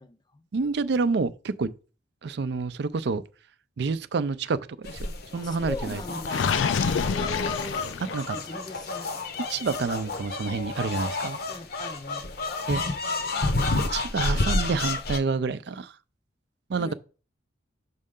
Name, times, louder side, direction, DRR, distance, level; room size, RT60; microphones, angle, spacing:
voice 1, 0.0-0.5 5.3-9.5 11.5-12.2 16.8-16.9, left 2 dB, 20° left, 0.5 m, -40 dB
voice 2, 0.5-1.7 2.2-3.2 3.8-6.0 8.1-8.4 9.5-11.4 12.7-13.0 13.7-15.9 16.7-16.9, right 4 dB, 60° right, 0.4 m, -28 dB
sound 1, 4.8-15.2, left 3 dB, 50° left, 0.7 m, -30 dB
Gurgling, 6.3-8.4, left 6 dB, 75° left, 0.4 m, -27 dB
6.2 x 5.4 x 3.7 m
head